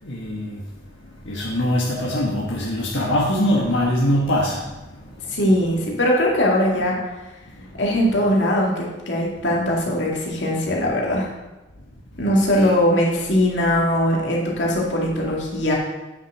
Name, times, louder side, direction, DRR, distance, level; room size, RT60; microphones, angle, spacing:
voice 1, 0.0-0.7 1.0-5.4 7.5-7.8 12.5-12.7, equal, 85° left, -5 dB, 1.5 m, -23 dB
voice 2, 5.3-7.0 7.8-11.3 12.2-15.7, left 1 dB, 70° left, -3 dB, 2.3 m, -20 dB
9.1 x 6.3 x 5.0 m, 1.1 s
head